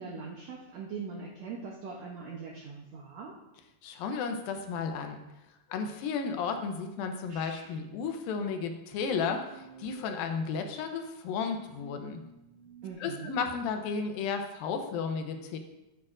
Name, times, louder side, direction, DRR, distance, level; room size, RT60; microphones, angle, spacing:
voice 1, 0.0-3.3 12.8-13.4, right 5 dB, 75° right, -1 dB, 1.5 m, -41 dB
voice 2, 3.8-5.2 5.7-12.2 13.0-15.6, left 5 dB, 80° left, 5 dB, 2.4 m, -33 dB
sound 1, 7.3-7.7 9.0-10.5 11.7-12.9, right 3 dB, 25° right, 3.9 m, -50 dB
13.5 x 8.8 x 2.5 m, 0.96 s
omnidirectional pair, 4.3 m